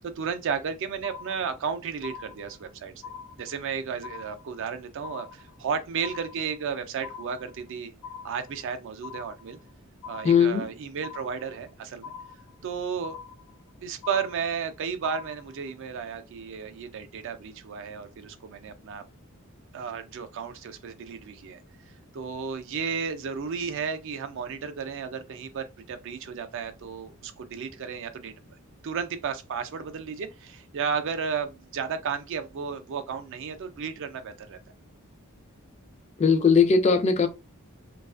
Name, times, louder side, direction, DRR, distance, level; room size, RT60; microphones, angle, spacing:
voice 1, 0.0-2.9 3.4-7.9 8.2-9.6 10.1-12.1 12.6-13.2 13.8-19.0 19.7-21.6 22.1-28.3 28.8-34.6, right 6 dB, 60° right, 0.4 m, -33 dB
sound 1, 1.0-1.7 2.0-2.7 3.0-3.7 4.0-4.7 5.0-5.7 6.0-6.7 7.0-7.7 8.0-8.7 9.0-9.7 10.0-10.7 11.0-11.7 12.0-12.7 13.0-13.7 14.0-14.7 15.0-15.7, left 6 dB, 80° left, 0.7 m, -43 dB
voice 2, 10.2-10.6 36.2-37.3, left 5 dB, 30° left, 0.3 m, -19 dB
2.4 x 2.3 x 2.3 m
head